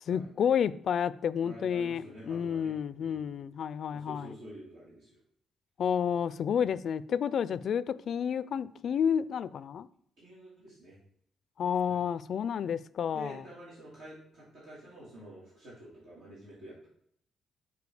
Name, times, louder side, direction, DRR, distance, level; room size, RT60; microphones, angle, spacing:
voice 1, 0.1-4.3 5.8-9.9 11.6-13.4, left 8 dB, 60° left, 0.3 m, -30 dB
voice 2, 1.4-2.7 3.0-3.2 3.9-5.1 6.6-6.7 10.2-11.0 11.9-12.0 13.1-16.9, right 1 dB, 80° right, 3.2 m, -49 dB
6.9 x 4.5 x 4.9 m
cardioid pair, 90°, 0 cm